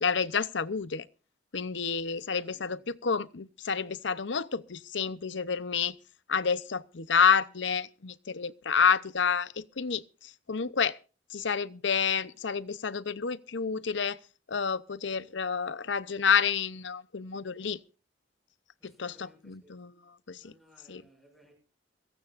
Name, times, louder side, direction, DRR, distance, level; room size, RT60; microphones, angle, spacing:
voice 1, 0.0-1.1 1.5-6.0 6.3-11.0 11.3-14.2 14.5-17.8 18.8-19.9 20.3-20.5 20.9-21.0, left 6 dB, 70° left, 0.8 m, -29 dB
voice 2, 2.0-2.9 18.8-19.8 20.4-21.6, equal, ahead, 6.6 m, -61 dB
21.5 x 17.0 x 2.6 m
head